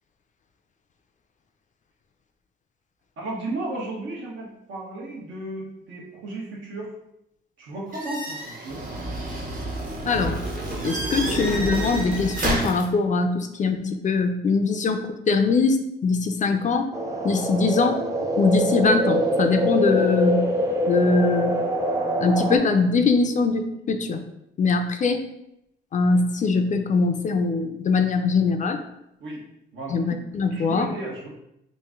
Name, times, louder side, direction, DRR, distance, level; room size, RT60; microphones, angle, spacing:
voice 1, 3.2-6.9 7.6-8.8 29.2-29.5 29.7-30.0 30.5-31.3, right 2 dB, 75° right, -3 dB, 1.1 m, -34 dB
sound 1, 7.9-12.8, right 1 dB, 45° right, 0.9 m, -29 dB
voice 2, 10.0-10.4 10.8-16.9 17.2-18.0 18.4-20.4 20.9-21.6 22.2-24.2 24.6-25.2 25.9-28.8 29.9-30.9, left 4 dB, 40° left, 6 dB, 0.4 m, -22 dB
sound 2, 16.9-22.6, equal, 15° right, 0.5 m, -24 dB
3.0 x 2.6 x 3.5 m, 0.83 s
cardioid pair, 90°, 20 cm